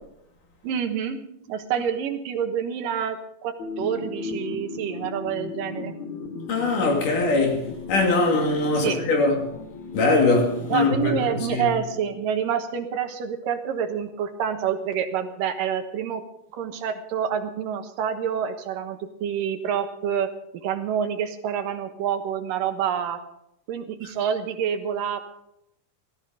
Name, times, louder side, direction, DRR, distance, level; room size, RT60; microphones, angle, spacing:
voice 1, 0.6-1.2 1.5-6.0 8.7-9.0 10.7-16.2 16.5-23.2 23.7-25.2, right 8 dB, 80° right, 2.9 m, -27 dB
sound 1, 3.6-12.6, left 4 dB, 55° left, 2.9 m, -37 dB
voice 2, 6.5-9.5 9.9-11.1 11.5-11.7, left 3 dB, 70° left, 4.1 m, -22 dB
16.5 x 13.5 x 5.2 m
omnidirectional pair, 3.9 m